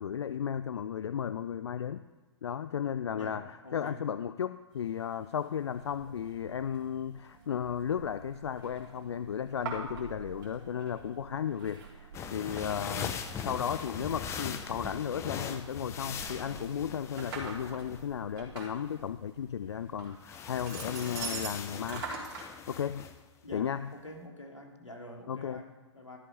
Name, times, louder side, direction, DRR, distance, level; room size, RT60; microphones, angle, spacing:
voice 1, 0.0-2.1 2.4-3.4 3.7-13.1 13.4-22.1 22.7-23.1 23.5-23.9 25.3-25.6, left 8 dB, 65° left, 13 dB, 0.4 m, -34 dB
voice 2, 3.1-4.0 12.9-13.2 23.4-26.2, left 1 dB, 85° left, 1 dB, 2.4 m, -47 dB
sound 1, 4.7-22.5, right 5 dB, 45° right, 3.7 m, -46 dB
sound 2, 5.6-20.2, right 7 dB, 65° right, 0.6 m, -52 dB
sound 3, 12.1-18.1 20.2-23.2, left 8 dB, 20° left, 0.7 m, -40 dB
13.5 x 7.6 x 5.5 m, 1.3 s
figure-of-eight pair, 115°, 15 cm